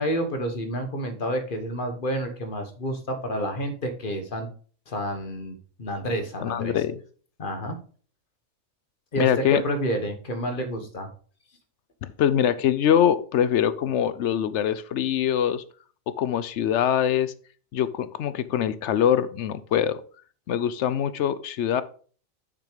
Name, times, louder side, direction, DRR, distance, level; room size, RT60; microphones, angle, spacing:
voice 1, 0.0-4.5 4.9-6.7 7.4-7.8 9.1-11.1, equal, 40° left, 7 dB, 1.3 m, -29 dB
voice 2, 6.4-7.0 9.2-9.6 12.2-15.6 16.2-17.3 17.7-20.0 20.5-21.8, left 9 dB, 70° left, 14 dB, 0.8 m, -23 dB
6.9 x 6.0 x 5.0 m, 0.43 s
omnidirectional pair, 1.4 m